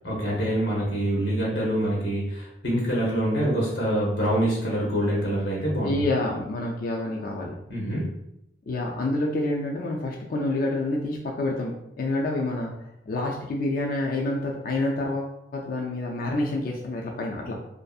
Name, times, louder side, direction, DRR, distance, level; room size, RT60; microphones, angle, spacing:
voice 1, 0.0-5.9 7.7-8.1, equal, 90° left, -4 dB, 0.8 m, -25 dB
voice 2, 5.8-7.5 8.7-12.7 13.1-17.6, left 2 dB, 55° left, -1 dB, 0.3 m, -28 dB
2.6 x 2.4 x 2.3 m, 0.84 s
head